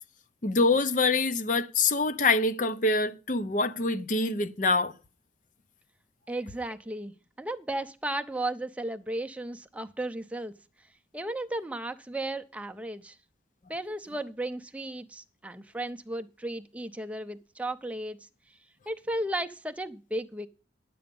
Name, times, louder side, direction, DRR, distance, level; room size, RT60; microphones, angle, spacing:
voice 1, 0.4-4.9, left 3 dB, 45° left, 0.7 m, -25 dB
voice 2, 6.3-10.6 11.1-13.2 13.7-18.3 18.9-20.5, right 1 dB, 5° right, 0.5 m, -35 dB
11.0 x 7.7 x 5.2 m
head